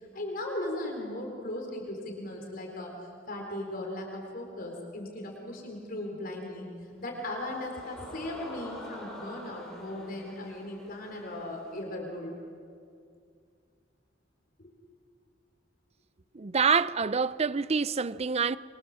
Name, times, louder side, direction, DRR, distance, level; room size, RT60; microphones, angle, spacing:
voice 1, 0.1-2.9 3.3-6.7 7.0-12.3 14.6-14.7, left 1 dB, 50° left, 4.2 m, -37 dB
sound 1, 7.0-11.8, equal, 5° left, 7.8 m, -47 dB
voice 2, 16.3-18.6, right 5 dB, 35° right, 0.6 m, -26 dB
26.0 x 24.0 x 7.5 m
head